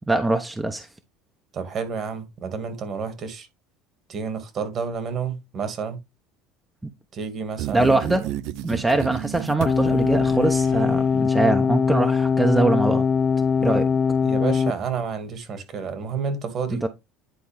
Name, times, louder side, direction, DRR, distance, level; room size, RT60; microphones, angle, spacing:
voice 1, 0.1-0.9 6.8-6.9 7.7-8.2 8.6-13.1 13.6-13.9 16.7-16.9, right 2 dB, 10° right, 1.0 m, -22 dB
voice 2, 1.5-3.5 4.1-6.0 7.1-8.3 14.2-16.8, right 5 dB, 45° right, 2.3 m, -30 dB
sound 1, 7.6-11.3, right 14 dB, 70° right, 0.5 m, -32 dB
sound 2, 9.7-14.7, left 6 dB, 35° left, 0.4 m, -21 dB
10.0 x 4.1 x 3.5 m
supercardioid pair, 90°, 0 cm